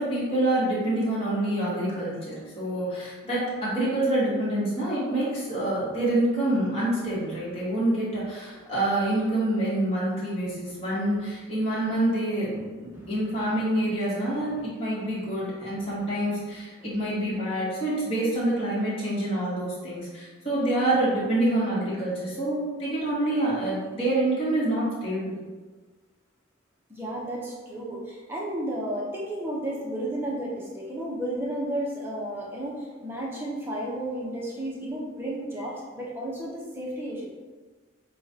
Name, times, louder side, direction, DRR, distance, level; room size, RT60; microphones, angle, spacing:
voice 1, 0.0-25.4, right 1 dB, 30° left, -8 dB, 1.5 m, -27 dB
voice 2, 12.8-13.3 14.5-14.6 15.0-16.3 16.8-17.0 26.9-37.3, right 1 dB, 10° right, -4 dB, 0.8 m, -33 dB
6.8 x 2.3 x 2.8 m, 1.3 s
head